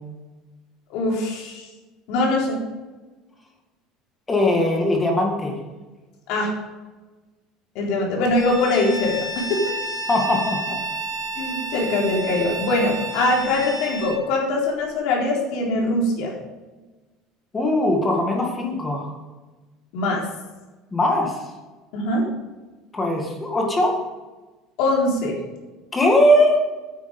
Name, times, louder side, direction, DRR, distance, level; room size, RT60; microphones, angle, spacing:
voice 1, 0.9-1.7 2.1-2.6 6.3-6.5 7.7-9.6 11.4-16.3 19.9-20.2 21.9-22.3 24.8-25.4, left 2 dB, 65° left, -2 dB, 4.1 m, -22 dB
voice 2, 4.3-5.6 10.1-10.8 17.5-19.2 20.9-21.5 22.9-24.0 25.9-26.7, left 1 dB, 15° left, 1 dB, 1.9 m, -20 dB
Bowed string instrument, 8.3-14.2, right 2 dB, 40° right, 3.7 m, -31 dB
10.0 x 9.0 x 5.4 m, 1.2 s
cardioid pair, 165°, 0 cm